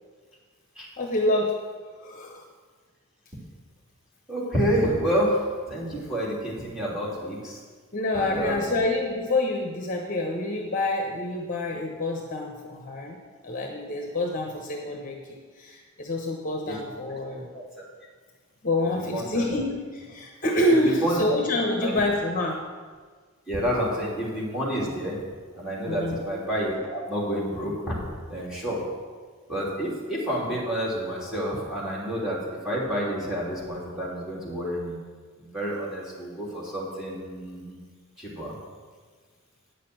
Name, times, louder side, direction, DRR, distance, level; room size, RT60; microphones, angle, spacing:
voice 1, 1.0-1.6 2.0-2.4 7.9-13.2 13.4-17.5 18.6-22.7 25.9-26.2, left 1 dB, 40° left, 1 dB, 1.0 m, -27 dB
voice 2, 4.3-5.4 5.7-7.6 8.1-8.7 16.7-16.8 17.5-17.6 19.1-19.5 21.0-21.2 21.8-22.0 23.5-25.2 25.5-28.0 28.3-28.8 29.5-32.4 32.6-35.0 35.4-37.8 38.2-38.5, equal, 5° right, -6 dB, 3.0 m, -29 dB
9.3 x 6.8 x 7.8 m, 1.5 s
head